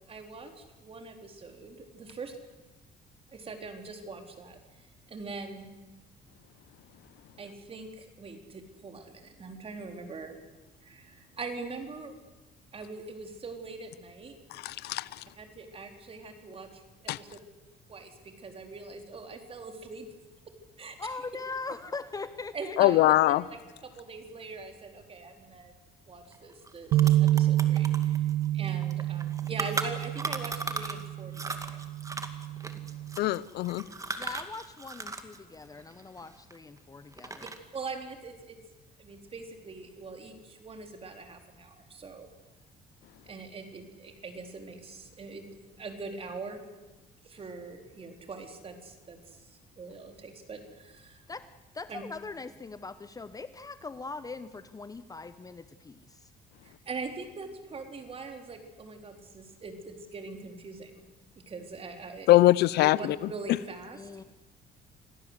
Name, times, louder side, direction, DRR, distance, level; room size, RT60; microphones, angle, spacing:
voice 1, 0.1-2.4 3.3-5.7 7.4-10.4 10.8-12.2 12.7-14.4 15.4-17.4 17.9-20.1 20.8-21.0 22.5-23.0 23.3-25.7 26.1-31.8 37.4-38.6 39.0-42.3 43.2-45.5 45.8-46.6 47.2-51.2 51.9-52.0 56.6-61.0 61.5-62.3 62.8-64.0, right 4 dB, 35° right, 5 dB, 3.9 m, -42 dB
voice 2, 14.6-15.1 17.1-17.2 22.8-23.4 33.2-33.8 62.3-63.0, left 16 dB, 75° left, 20 dB, 0.7 m, -22 dB
voice 3, 21.0-23.0 34.2-37.5 51.3-51.4 51.7-56.2 63.9-64.2, left 4 dB, 20° left, 12 dB, 0.9 m, -41 dB
sound 1, 26.3-26.4 26.7-31.1 31.3-35.4 35.6-36.8 37.1-37.8, right 3 dB, 20° right, 2.2 m, -37 dB
sound 2, 26.9-33.2, right 14 dB, 85° right, 1.3 m, -28 dB
27.0 x 17.5 x 8.1 m, 1.1 s
cardioid pair, 110°, 17 cm